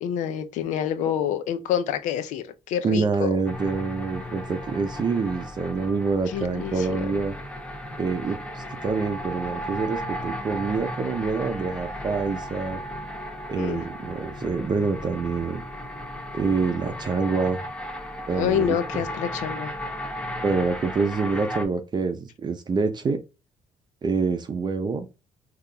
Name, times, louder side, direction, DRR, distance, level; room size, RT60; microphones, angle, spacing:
voice 1, 0.0-3.4 6.3-7.1 13.5-13.8 18.3-19.7, left 9 dB, 90° left, 0.5 m, -27 dB
voice 2, 2.8-7.3 8.0-12.8 13.5-15.6 16.3-17.6 18.3-18.8 20.4-23.2 24.0-25.1, right 4 dB, 35° right, 0.5 m, -26 dB
sound 1, 3.4-21.7, equal, 10° left, 0.7 m, -35 dB
3.8 x 2.8 x 2.2 m
cardioid pair, 95°, 12 cm